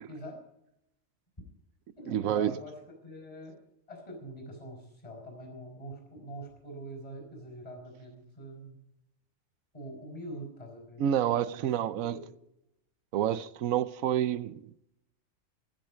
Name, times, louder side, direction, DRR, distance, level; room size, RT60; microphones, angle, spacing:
voice 1, 0.1-0.4 2.0-3.6 3.9-8.8 9.7-12.3, right 1 dB, 30° left, 5.1 m, -44 dB
voice 2, 2.1-2.5 11.0-12.1 13.1-14.7, right 10 dB, 85° right, 1.1 m, -28 dB
15.5 x 12.5 x 5.0 m
omnidirectional pair, 1.4 m